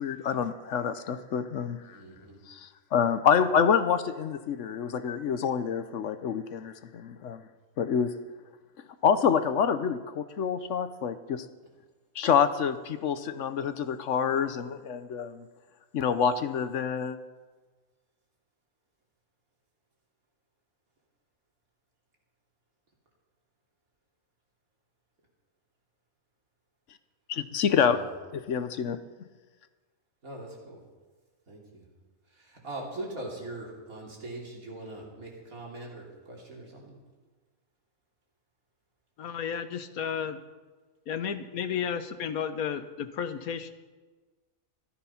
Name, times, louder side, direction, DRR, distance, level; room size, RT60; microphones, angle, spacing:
voice 1, 0.0-2.0 2.5-7.4 7.8-8.1 9.0-11.4 12.2-15.5 15.9-17.2 27.3-28.0 28.3-29.0, left 7 dB, 65° left, 12 dB, 1.0 m, -27 dB
voice 2, 1.9-2.4 27.7-28.1 30.2-30.8 31.5-31.9 32.3-37.0, right 2 dB, 80° right, -2 dB, 3.7 m, -41 dB
voice 3, 39.2-40.4 41.1-43.7, left 7 dB, 85° left, 11 dB, 1.4 m, -33 dB
14.5 x 13.0 x 5.7 m, 1.3 s
omnidirectional pair, 1.5 m